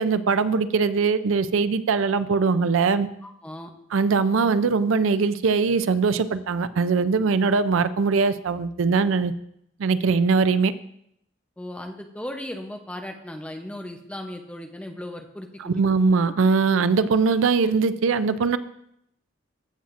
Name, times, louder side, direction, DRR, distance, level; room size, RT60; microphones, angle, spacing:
voice 1, 0.0-3.1 3.9-9.3 9.8-10.7 15.6-18.6, right 4 dB, 85° right, 14 dB, 0.4 m, -21 dB
voice 2, 3.2-3.7 11.6-15.7, left 1 dB, 5° left, 4 dB, 0.6 m, -36 dB
14.5 x 7.1 x 2.5 m, 0.75 s
head